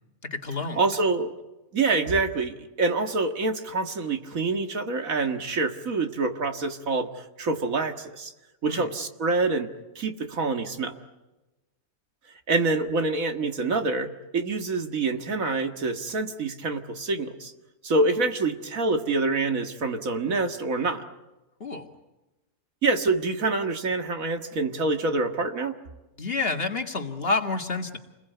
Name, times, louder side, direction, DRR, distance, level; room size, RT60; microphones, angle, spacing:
voice 1, 0.2-0.8 8.7-8.9 21.6-21.9 26.2-28.0, left 3 dB, 40° left, 4 dB, 2.2 m, -29 dB
voice 2, 0.8-1.3 1.7-8.3 8.6-9.7 10.0-10.9 12.5-17.5 17.8-21.0 22.8-25.8, right 3 dB, 65° right, 6 dB, 2.1 m, -26 dB
29.0 x 21.5 x 9.4 m, 1.1 s
omnidirectional pair, 1.5 m